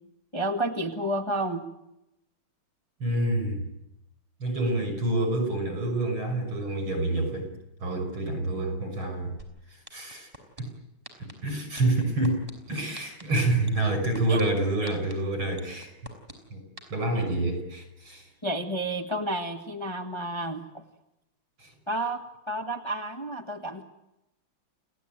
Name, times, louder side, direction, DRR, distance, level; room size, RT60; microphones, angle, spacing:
voice 1, 0.3-1.6 14.3-14.4 17.1-17.4 18.4-20.8 21.9-22.2 22.5-23.8, right 1 dB, 15° left, 4 dB, 1.6 m, -31 dB
voice 2, 3.0-3.6 4.4-7.5 7.8-9.4 9.9-10.3 10.6-10.7 11.2-15.9 16.5-16.6 16.9-18.2 21.6-21.7, right 2 dB, 70° right, 6 dB, 6.9 m, -27 dB
sound 1, 9.4-9.5 9.9-10.6 11.0-11.3 11.8-12.5 12.9-13.2 13.7-14.4 14.9-15.1 15.6-16.3 16.8-16.9, right 1 dB, 15° right, 5.1 m, -43 dB
30.0 x 17.5 x 9.1 m, 0.88 s
omnidirectional pair, 2.4 m